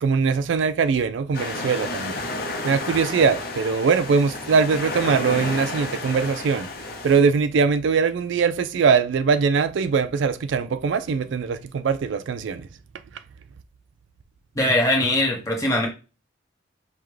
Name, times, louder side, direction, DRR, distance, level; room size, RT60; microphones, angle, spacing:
voice 1, 0.0-2.2 2.6-6.7 7.0-12.7, right 5 dB, 75° right, 0.4 m, -21 dB
sound 1, 1.3-7.2, left 2 dB, 50° left, 0.8 m, -31 dB
voice 2, 14.5-15.9, left 1 dB, 15° left, 1.2 m, -21 dB
5.6 x 2.2 x 3.2 m
head